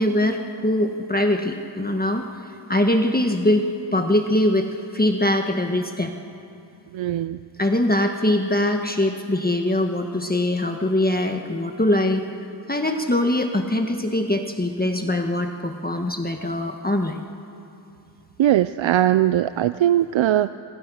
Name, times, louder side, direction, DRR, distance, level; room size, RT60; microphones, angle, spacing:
voice 1, 0.0-2.3 2.7-4.7 4.9-6.1 7.6-12.2 12.7-17.2, left 1 dB, 20° left, 4 dB, 1.6 m, -22 dB
voice 2, 6.9-7.4 18.4-20.5, right 12 dB, 85° right, 13 dB, 0.5 m, -20 dB
26.5 x 24.5 x 6.4 m, 2.7 s
cardioid pair, 50°, 45 cm